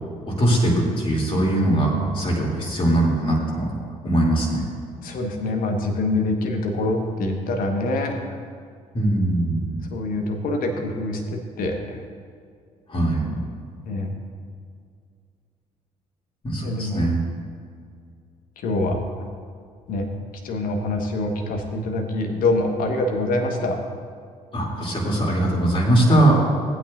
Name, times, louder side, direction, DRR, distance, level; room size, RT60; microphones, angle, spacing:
voice 1, 0.3-3.7 4.0-4.6 8.9-9.8 12.9-13.4 16.4-17.2 24.5-26.4, right 1 dB, 30° left, -4 dB, 2.9 m, -21 dB
voice 2, 5.0-8.1 9.9-12.0 13.9-14.1 16.6-17.0 18.6-19.0 19.9-20.1 20.4-23.8, left 2 dB, 50° left, 3 dB, 1.5 m, -25 dB
18.5 x 8.7 x 2.6 m, 2.2 s
figure-of-eight pair, 50°, 18 cm